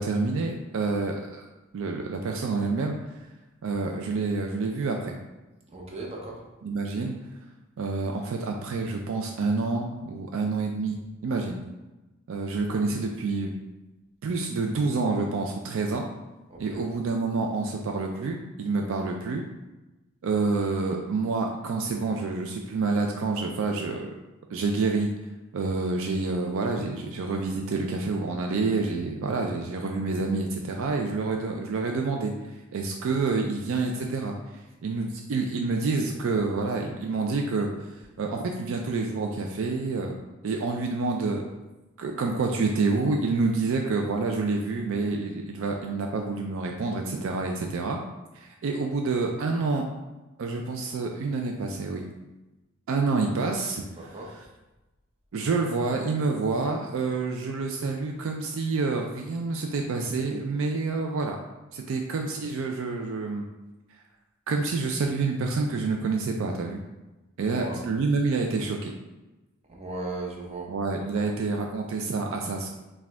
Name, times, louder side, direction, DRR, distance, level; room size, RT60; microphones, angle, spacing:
voice 1, 0.0-1.5 1.7-3.0 3.6-5.2 6.6-7.2 7.8-11.6 12.3-13.5 14.2-16.1 16.6-19.4 20.2-24.1 24.5-25.1 25.5-32.3 32.7-34.3 34.8-37.7 38.2-40.1 40.4-41.4 42.0-48.0 48.3-49.8 50.4-52.0 52.9-53.8 55.3-61.4 61.7-63.5 64.5-66.8 67.4-68.9 70.7-72.7, right 3 dB, 65° right, 2 dB, 0.4 m, -28 dB
voice 2, 5.7-6.4 16.5-16.8 54.0-54.3 67.4-67.8 69.7-70.7 71.1-71.3, right 2 dB, 30° right, -2 dB, 0.7 m, -37 dB
4.8 x 2.3 x 3.4 m, 1.1 s
head